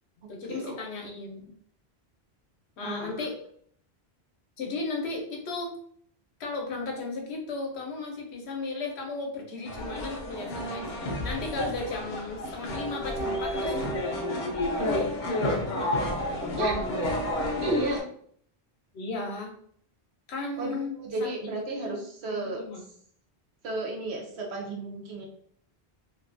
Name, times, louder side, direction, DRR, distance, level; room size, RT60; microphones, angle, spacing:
voice 1, 0.3-1.5 2.8-3.4 4.6-5.7 6.4-10.9 11.2-14.0 14.8-16.0 16.2-17.1 18.9-19.5 20.3-21.3 21.8-22.0 22.3-22.8, left 3 dB, 85° left, 0 dB, 1.0 m, -35 dB
voice 2, 2.8-3.3 16.6-16.8 17.6-18.0 20.6-22.6 23.6-25.3, right 2 dB, 85° right, 0 dB, 0.9 m, -33 dB
sound 1, 9.7-18.0, left 1 dB, 55° left, 0.6 m, -30 dB
2.6 x 2.3 x 2.5 m, 0.62 s
omnidirectional pair, 1.1 m